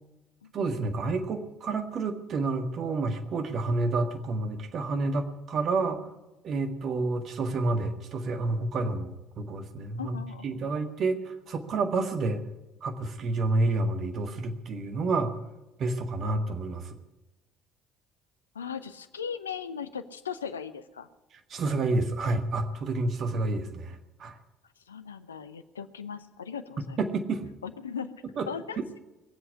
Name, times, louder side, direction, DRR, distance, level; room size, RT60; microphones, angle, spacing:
voice 1, 0.5-6.0 6.4-12.4 12.8-15.4 15.8-17.0 21.5-24.4 27.0-27.5 28.4-28.5, right 3 dB, 50° right, 6 dB, 1.8 m, -29 dB
voice 2, 10.0-10.5 18.5-21.1 24.9-27.0 27.6-28.1 28.5-28.8, left 7 dB, 85° left, 11 dB, 0.7 m, -38 dB
20.5 x 7.8 x 8.4 m, 1.1 s
figure-of-eight pair, 50°, 0 cm